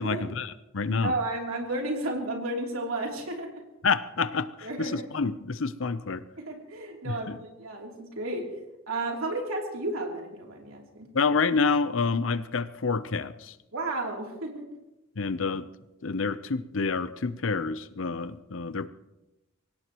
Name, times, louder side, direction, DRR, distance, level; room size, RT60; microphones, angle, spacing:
voice 1, 0.0-1.1 3.8-6.2 7.0-7.4 11.1-13.5 15.2-15.7 16.0-18.9, left 4 dB, 70° left, 14 dB, 0.7 m, -28 dB
voice 2, 1.0-3.6 4.6-5.0 6.4-8.5 8.9-11.1 13.7-14.6, right 2 dB, 90° right, 0 dB, 3.1 m, -32 dB
24.0 x 17.5 x 3.0 m, 0.97 s
head